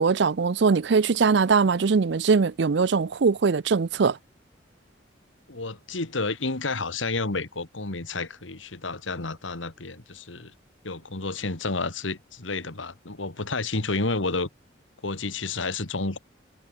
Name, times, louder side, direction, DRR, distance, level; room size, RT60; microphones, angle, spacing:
voice 1, 0.0-4.2, right 5 dB, 65° right, 0.5 m, -21 dB
voice 2, 5.5-10.5 10.8-14.5 15.0-16.2, left 3 dB, 90° left, 2.2 m, -30 dB
head